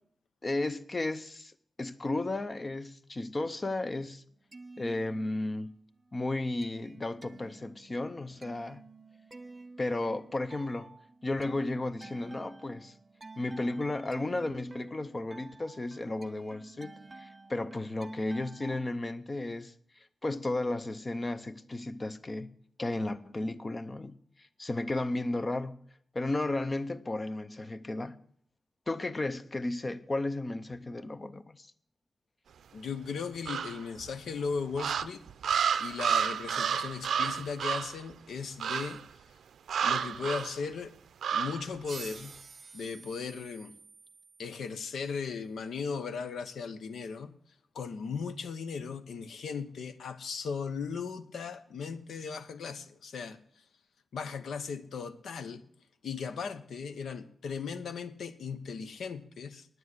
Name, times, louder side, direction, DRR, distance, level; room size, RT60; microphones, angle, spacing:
voice 1, 0.4-1.5 1.8-4.2 4.8-5.7 6.1-8.8 9.8-12.9 13.4-19.7 20.2-22.5 22.8-25.9 26.1-28.2 28.9-31.7, left 2 dB, 20° left, 0.6 m, -34 dB
sound 1, 4.3-5.7 6.1-18.9, right 3 dB, 20° right, 0.5 m, -51 dB
voice 2, 32.7-35.2 35.8-39.0 39.8-40.9 41.3-42.4 42.7-43.7 44.4-47.3 47.7-53.4 54.1-55.6 56.0-59.7, left 5 dB, 80° left, 1.0 m, -37 dB
sound 2, 33.5-34.1 34.7-38.0 38.6-39.0 39.7-40.6 41.2-41.7, right 7 dB, 90° right, 0.5 m, -30 dB
sound 3, 41.8-45.1, right 5 dB, 40° right, 0.9 m, -49 dB
9.9 x 9.2 x 8.0 m
wide cardioid pair, 165°, 0 cm